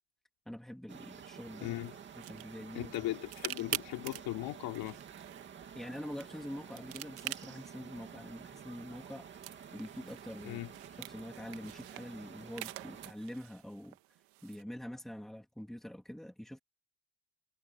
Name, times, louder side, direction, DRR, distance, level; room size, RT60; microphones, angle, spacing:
voice 1, 0.5-1.8 2.2-2.9 5.7-9.3 9.7-10.6 11.0-14.0 14.4-16.6, equal, ahead, 2.8 m, -45 dB
sound 1, 0.9-13.1, right 8 dB, 25° right, 2.3 m, -51 dB
voice 2, 1.6-1.9 2.7-5.0 10.4-10.7, left 16 dB, 55° left, 3.3 m, -38 dB
sound 2, 1.6-14.6, right 20 dB, 80° right, 1.7 m, -47 dB
cardioid pair, 175°, 44 cm